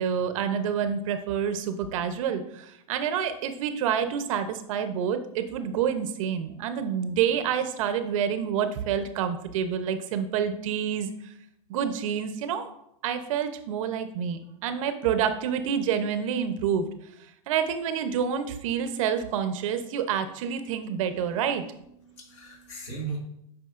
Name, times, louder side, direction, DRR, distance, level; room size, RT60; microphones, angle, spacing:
voice 1, 0.0-11.3 11.7-12.7 13.0-16.9 17.5-21.6, right 8 dB, 60° right, 9 dB, 0.8 m, -28 dB
voice 2, 21.0-23.2, right 5 dB, 60° left, -2 dB, 2.4 m, -39 dB
8.5 x 4.9 x 2.5 m, 0.77 s
supercardioid pair, 135°, 19 cm